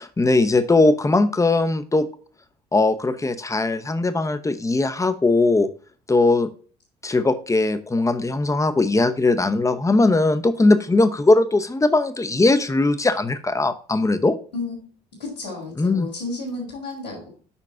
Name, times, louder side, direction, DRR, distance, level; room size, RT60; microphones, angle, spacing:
voice 1, 0.0-2.1 2.7-5.7 6.1-6.5 7.0-14.3 15.8-16.1, left 2 dB, 15° left, 11 dB, 0.9 m, -19 dB
voice 2, 15.2-17.3, left 2 dB, 90° left, -6 dB, 4.3 m, -32 dB
7.1 x 5.9 x 3.7 m, 0.40 s
figure-of-eight pair, 55°, 21 cm